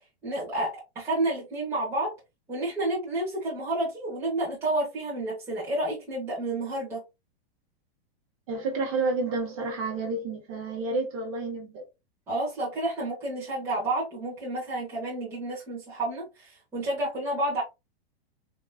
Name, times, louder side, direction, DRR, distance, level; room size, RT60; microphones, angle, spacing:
voice 1, 0.2-2.1 2.5-7.0 12.3-17.6, right 1 dB, 10° right, 1.0 m, -30 dB
voice 2, 8.5-11.8, right 3 dB, 35° right, 1.3 m, -30 dB
3.7 x 2.9 x 2.2 m
supercardioid pair, 175°, 31 cm